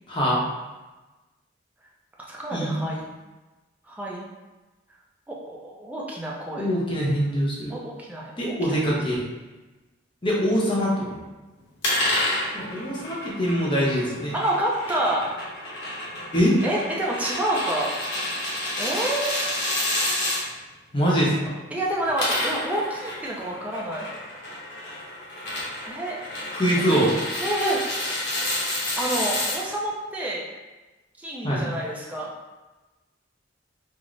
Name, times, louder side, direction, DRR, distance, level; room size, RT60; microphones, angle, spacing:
voice 1, 0.1-0.4 2.5-2.7 6.6-7.7 8.4-9.2 10.2-11.2 12.5-14.3 16.3-16.6 20.9-21.5 26.5-27.1 31.4-31.6, equal, 25° left, -5 dB, 0.8 m, -23 dB
voice 2, 2.3-3.1 3.8-4.2 5.3-6.7 7.7-8.8 14.3-15.2 16.6-17.9 18.8-19.4 21.7-24.1 25.8-26.2 26.8-27.0 27.4-27.9 28.7-30.5 31.2-32.3, right 1 dB, 10° right, -4 dB, 0.4 m, -28 dB
sound 1, 11.8-20.4 21.9-29.6, left 1 dB, 60° left, 1.0 m, -29 dB
3.8 x 2.1 x 3.1 m, 1.1 s
head